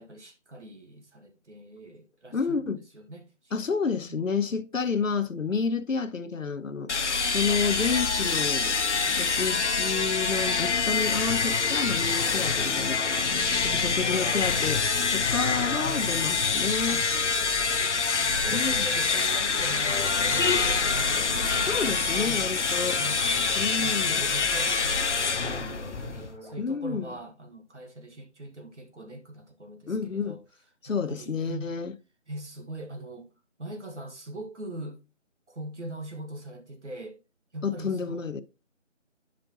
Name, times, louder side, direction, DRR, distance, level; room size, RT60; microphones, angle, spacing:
voice 1, 0.0-3.5 4.1-4.2 13.3-14.3 16.9-17.1 17.7-21.7 22.1-22.4 23.0-23.2 23.8-30.4 30.9-31.7 32.3-33.3 33.6-35.0 35.5-37.2 37.5-38.3, right 1 dB, 65° right, 1.6 m, -42 dB
voice 2, 2.3-2.8 3.5-6.9 7.3-8.8 9.0-13.0 13.6-14.8 15.1-17.0 18.5-18.8 21.7-23.0 23.6-24.2 26.6-27.1 29.9-30.4 30.8-31.9 37.6-38.4, left 5 dB, 90° left, 0.9 m, -30 dB
sound 1, 6.9-26.4, left 5 dB, 65° left, 0.6 m, -26 dB
sound 2, 19.3-26.6, equal, 35° right, 1.5 m, -46 dB
10.5 x 5.2 x 2.8 m
figure-of-eight pair, 175°, 38 cm